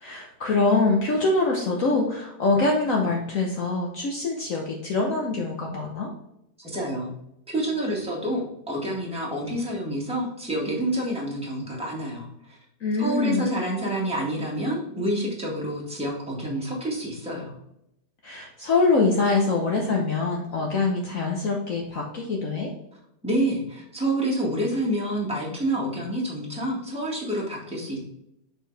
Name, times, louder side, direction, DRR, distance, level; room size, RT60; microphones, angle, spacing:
voice 1, 0.0-6.1 12.8-13.5 18.2-22.7, left 3 dB, 55° left, 0 dB, 1.2 m, -24 dB
voice 2, 6.7-7.1 7.5-12.6 13.0-17.5 23.2-28.0, right 1 dB, 5° right, -4 dB, 1.8 m, -28 dB
6.7 x 4.6 x 3.3 m, 0.81 s
omnidirectional pair, 1.8 m